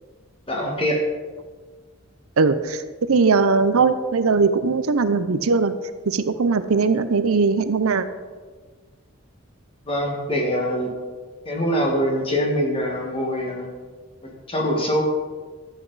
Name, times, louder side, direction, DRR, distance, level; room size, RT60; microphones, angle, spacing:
voice 1, 0.5-1.0 9.9-10.9 11.5-13.7 14.2-15.0, equal, 25° left, 0 dB, 1.6 m, -24 dB
voice 2, 2.4-5.7 6.1-8.1, right 4 dB, 80° right, 11 dB, 0.6 m, -20 dB
12.0 x 8.1 x 4.0 m, 1.5 s
head